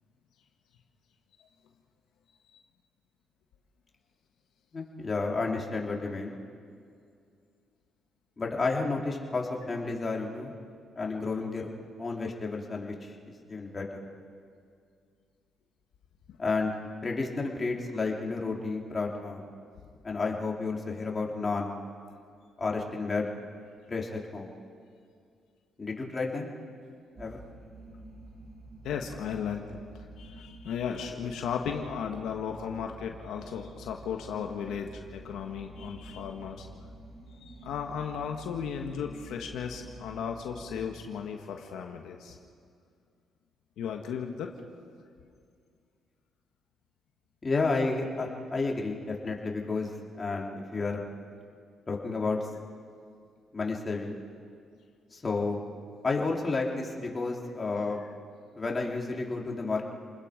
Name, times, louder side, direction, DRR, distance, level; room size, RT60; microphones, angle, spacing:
voice 1, 4.7-6.4 8.4-10.5 10.9-11.7 12.0-14.0 16.4-16.7 17.0-19.4 20.0-21.8 22.6-23.3 23.9-24.5 25.8-26.5 27.2-27.4 47.4-51.0 51.9-52.5 53.5-54.2 55.1-55.6 56.0-58.0 58.5-59.8, left 3 dB, 30° left, -1 dB, 3.4 m, -31 dB
sound 1, 27.2-40.9, right 1 dB, 45° right, 7.9 m, -49 dB
voice 2, 28.8-36.7 37.4-42.4 43.8-44.5 58.0-58.1, left 7 dB, 80° left, 3 dB, 1.5 m, -35 dB
29.0 x 20.5 x 5.2 m, 2.3 s
cardioid pair, 90°, 0 cm